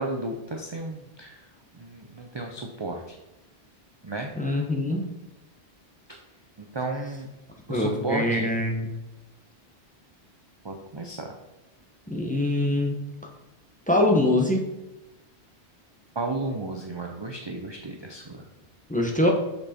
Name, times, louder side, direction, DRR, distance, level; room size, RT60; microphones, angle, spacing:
voice 1, 0.0-1.4 1.7-3.2 4.0-4.3 6.1-6.2 6.6-7.3 7.7-8.5 10.6-11.3 16.2-18.4, right 2 dB, 30° right, 2 dB, 0.6 m, -33 dB
voice 2, 4.4-5.1 7.7-8.9 12.1-12.9 13.9-14.6 18.9-19.3, left 1 dB, 10° left, 0 dB, 1.0 m, -23 dB
6.3 x 5.4 x 4.3 m, 1.0 s
omnidirectional pair, 1.1 m